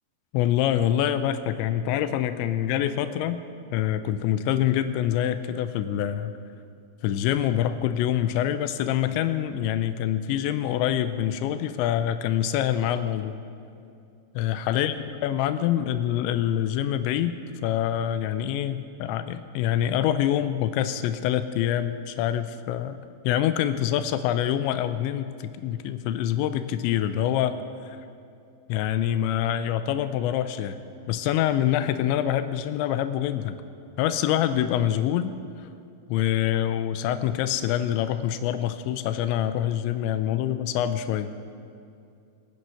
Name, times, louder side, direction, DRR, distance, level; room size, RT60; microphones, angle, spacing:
voice 1, 0.3-3.5 3.7-6.3 7.0-13.4 14.4-27.6 27.9-28.0 28.7-30.8 31.1-33.6 34.0-35.7 36.1-41.3, left 11 dB, 85° left, 11 dB, 2.6 m, -25 dB
24.0 x 9.3 x 5.8 m, 2.5 s
omnidirectional pair, 5.8 m